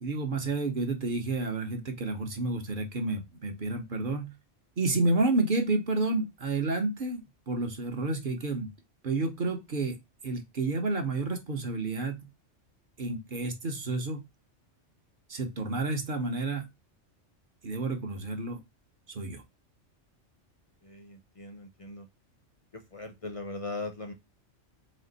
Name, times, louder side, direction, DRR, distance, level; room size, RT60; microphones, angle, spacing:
voice 1, 0.0-4.3 4.8-8.7 9.0-10.0 10.2-12.2 13.0-14.2 15.3-16.7 17.6-18.6 19.1-19.4, right 2 dB, 50° right, 4 dB, 0.9 m, -30 dB
voice 2, 20.8-22.1 22.7-24.1, left 2 dB, 40° left, 5 dB, 0.5 m, -39 dB
4.2 x 2.4 x 3.8 m, 0.20 s
omnidirectional pair, 1.3 m